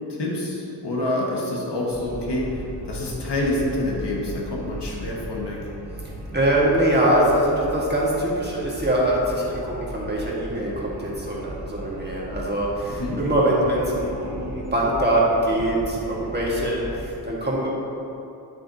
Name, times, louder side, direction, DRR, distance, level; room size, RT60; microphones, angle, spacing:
voice 1, 0.1-5.6 13.0-13.2, left 1 dB, 75° left, -4 dB, 1.6 m, -27 dB
sound 1, 1.9-17.0, right 1 dB, 5° right, 1.5 m, -37 dB
voice 2, 6.3-17.7, right 1 dB, 25° right, -4 dB, 1.5 m, -23 dB
8.2 x 8.0 x 2.8 m, 2.8 s
wide cardioid pair, 100°, 41 cm